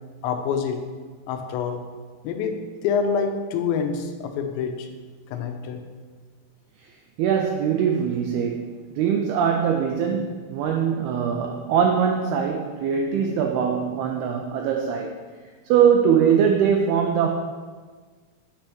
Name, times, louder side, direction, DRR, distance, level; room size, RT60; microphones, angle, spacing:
voice 1, 0.2-0.8 1.3-1.8 2.2-2.6 2.8-4.9 5.3-5.8, left 6 dB, 85° left, 4 dB, 3.0 m, -26 dB
voice 2, 7.2-15.2 15.7-17.3, right 7 dB, 90° right, 2 dB, 2.2 m, -22 dB
8.6 x 3.4 x 5.9 m, 1.5 s
omnidirectional pair, 5.1 m